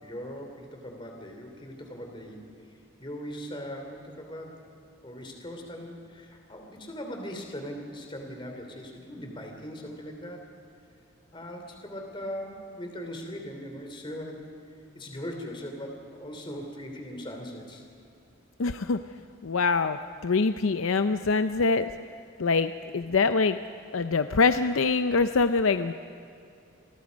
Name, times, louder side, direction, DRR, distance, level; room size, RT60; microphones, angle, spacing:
voice 1, 0.0-4.7 5.0-10.4 11.3-14.5 14.9-17.8, equal, 25° left, 3 dB, 3.0 m, -40 dB
voice 2, 18.6-19.0 19.4-21.9 22.4-23.6 23.9-25.9, left 4 dB, 80° left, 9 dB, 0.6 m, -24 dB
29.0 x 22.0 x 5.3 m, 2.7 s
head